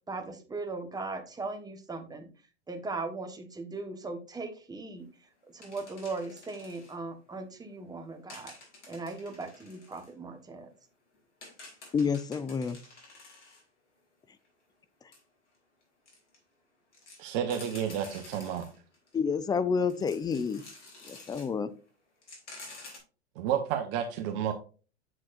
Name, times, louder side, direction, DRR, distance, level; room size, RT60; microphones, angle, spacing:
voice 1, 0.1-2.3 2.7-5.1 5.5-8.6 8.9-10.7, right 3 dB, 10° right, 1.3 m, -38 dB
sound 1, 5.6-7.0 8.3-10.1 10.7-10.8 11.1-13.6 14.5-14.6 15.1-15.2 15.8-16.4 16.9-19.2 19.8-21.5 21.9-22.0 22.2-23.0, left 2 dB, 85° left, 3.5 m, -50 dB
voice 2, 11.9-12.8 19.1-20.6 21.1-21.7, left 5 dB, 10° left, 0.4 m, -29 dB
voice 3, 17.2-18.7 23.4-24.5, right 9 dB, 50° right, 1.1 m, -31 dB
7.5 x 6.3 x 2.5 m
hypercardioid pair, 105°, 34 cm